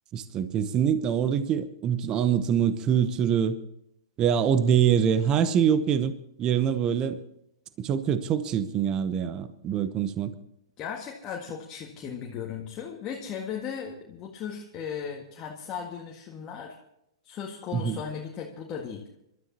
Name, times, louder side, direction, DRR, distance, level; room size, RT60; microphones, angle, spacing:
voice 1, 0.1-3.6 4.2-6.1 6.4-7.2 7.8-10.3 17.7-18.0, right 8 dB, 25° right, 0.9 m, -24 dB
voice 2, 10.8-16.8 17.2-19.0, left 7 dB, 25° left, 1.8 m, -36 dB
27.5 x 13.0 x 2.9 m
figure-of-eight pair, 115°, 3 cm